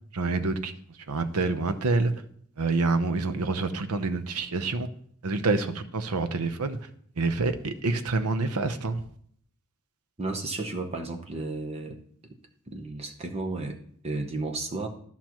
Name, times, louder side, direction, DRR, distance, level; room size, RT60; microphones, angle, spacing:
voice 1, 0.1-0.7 1.1-2.1 2.6-4.9 5.2-6.8 7.2-9.0, right 3 dB, 80° right, 0.7 m, -27 dB
voice 2, 10.2-12.0 12.7-13.8 14.0-14.9, right 2 dB, 30° right, 0.9 m, -33 dB
13.5 x 5.8 x 3.0 m
head